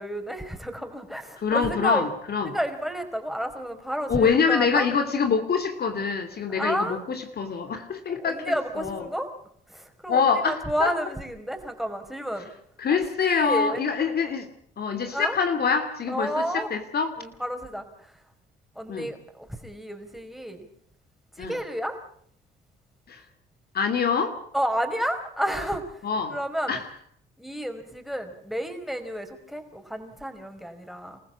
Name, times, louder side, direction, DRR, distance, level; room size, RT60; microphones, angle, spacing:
voice 1, 0.0-2.0 2.4-4.9 6.5-7.0 8.2-9.3 9.7-12.5 13.2-13.8 15.1-15.4 16.1-16.7 17.2-18.1 18.7-20.7 21.4-22.0 24.5-26.0 26.3-26.7 27.4-31.2, equal, ahead, 6 dB, 4.8 m, -31 dB
voice 2, 1.4-2.6 4.1-8.4 8.8-9.1 10.1-10.9 12.8-14.5 14.8-17.1 18.9-19.1 21.4-21.6 23.1-23.2 23.7-24.4 26.0-26.4 26.7-26.9, left 5 dB, 50° left, 8 dB, 2.7 m, -25 dB
27.5 x 15.0 x 8.6 m, 0.66 s
supercardioid pair, 70°, 20 cm